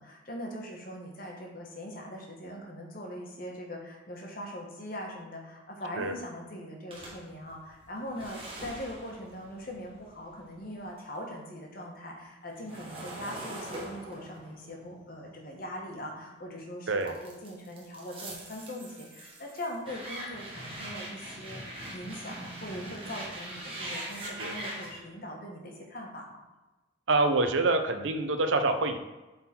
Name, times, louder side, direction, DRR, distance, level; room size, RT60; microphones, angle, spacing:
voice 1, 0.0-26.4, equal, 45° left, 0 dB, 1.3 m, -41 dB
sound 1, 6.9-11.2 11.5-16.4 17.0-25.0, right 1 dB, 30° right, 1.4 m, -42 dB
voice 2, 27.1-29.0, right 3 dB, 80° right, 7 dB, 0.7 m, -26 dB
7.9 x 4.0 x 4.4 m, 1.1 s
head